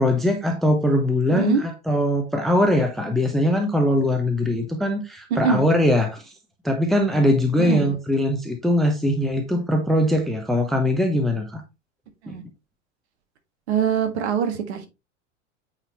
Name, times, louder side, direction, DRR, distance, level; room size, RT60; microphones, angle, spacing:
voice 1, 0.0-6.3 6.6-11.6 12.3-12.4, left 1 dB, ahead, 0.8 m, -21 dB
voice 2, 1.3-1.6 5.3-5.7 7.6-7.9 12.2-12.4 13.7-14.9, right 7 dB, 60° right, 1.6 m, -23 dB
8.9 x 4.2 x 3.0 m
figure-of-eight pair, 85°, 38 cm